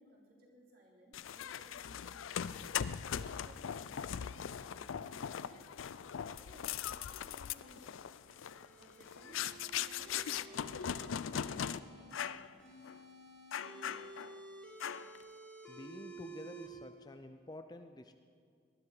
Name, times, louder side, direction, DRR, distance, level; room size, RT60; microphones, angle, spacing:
voice 1, 0.0-2.8 3.1-5.7 6.3-8.0 8.7-12.6, right 1 dB, 50° right, -2 dB, 3.2 m, -62 dB
sound 1, 1.1-11.8 12.1-12.5 12.8-13.0 13.5-14.4 14.8-15.2, left 8 dB, 85° left, 0.4 m, -40 dB
sound 2, 8.2-12.1 12.6-16.7, right 2 dB, 5° left, 2.5 m, -53 dB
voice 2, 15.7-18.2, left 1 dB, 20° left, 8 dB, 0.5 m, -49 dB
19.5 x 12.5 x 4.9 m, 2.1 s
head